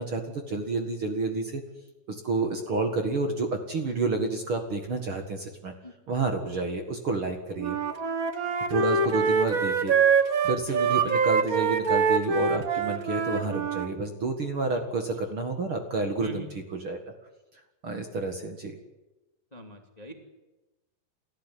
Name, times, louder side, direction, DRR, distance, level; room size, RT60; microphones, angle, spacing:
voice 1, 0.0-1.6 2.1-5.7 6.1-7.8 8.7-17.0 17.8-18.8, right 3 dB, 45° right, 5 dB, 2.3 m, -30 dB
Wind instrument woodwind instrument, 7.6-13.9, right 5 dB, 75° right, 0.8 m, -25 dB
voice 2, 19.5-20.1, right 2 dB, 15° left, 4 dB, 2.0 m, -40 dB
29.5 x 14.0 x 9.5 m, 1.1 s
omnidirectional pair, 4.0 m